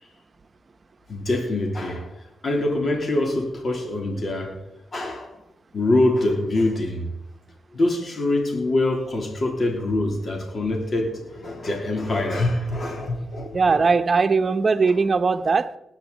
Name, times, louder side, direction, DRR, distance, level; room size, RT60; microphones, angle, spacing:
voice 1, 1.1-2.1 2.4-4.6 4.9-5.3 5.7-7.1 7.7-13.8, left 2 dB, 50° left, 3.4 m, -24 dB
voice 2, 13.5-15.7, right 4 dB, 45° right, 0.9 m, -20 dB
19.5 x 9.8 x 4.1 m
cardioid pair, 70°, 0 cm